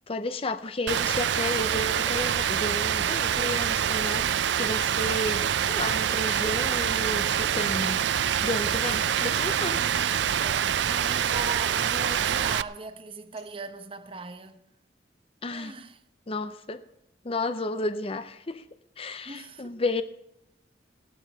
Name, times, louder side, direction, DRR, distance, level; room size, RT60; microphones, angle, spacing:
voice 1, 0.1-8.0 8.4-9.8 15.4-15.8 16.3-16.8 17.2-18.6 19.0-20.0, left 2 dB, 30° left, 0.6 m, -32 dB
Rain, 0.9-12.6, right 9 dB, 75° right, 0.4 m, -26 dB
sound 1, 5.5-5.8 6.0-6.1 6.9-7.3 8.0-8.5 9.5-9.8 10.8-11.1 12.0-12.4 13.2-13.6, left 4 dB, 75° left, 3.9 m, -56 dB
voice 2, 9.1-14.6 15.5-16.0 19.2-19.8, right 3 dB, 30° right, 0.9 m, -40 dB
16.0 x 12.5 x 5.5 m
head